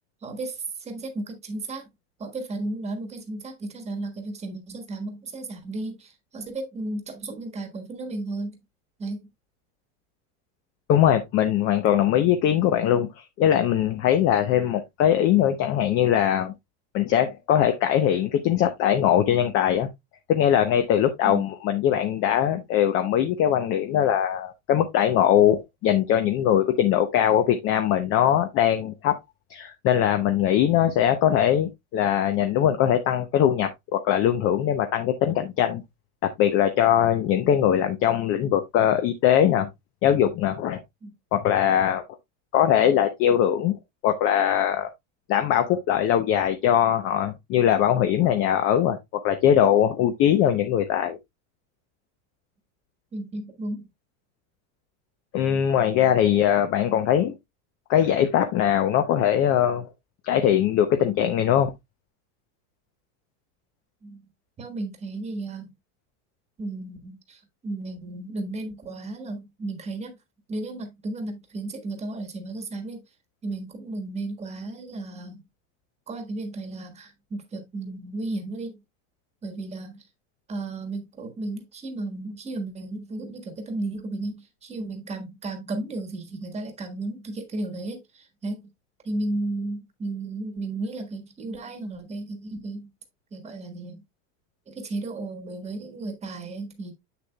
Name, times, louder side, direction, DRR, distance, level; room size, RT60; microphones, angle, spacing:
voice 1, 0.2-1.9 2.2-8.6 9.0-9.3 21.2-21.5 41.0-41.1 53.1-53.9 64.0-64.2 64.6-65.7 66.6-67.4 67.6-70.1 70.5-73.0 73.4-75.4 76.1-78.8 79.4-80.0 80.5-88.6 89.0-92.9 93.3-94.0 94.7-96.9, right 2 dB, 15° right, 1.4 m, -34 dB
voice 2, 10.9-16.5 16.9-19.9 20.3-29.2 29.5-35.8 36.2-39.7 40.0-40.8 41.3-42.0 42.5-43.8 44.0-44.9 45.3-49.0 49.2-51.2 55.3-57.3 57.9-59.9 60.2-61.7, left 10 dB, 35° left, 0.7 m, -21 dB
7.8 x 6.8 x 2.2 m
supercardioid pair, 160°, 38 cm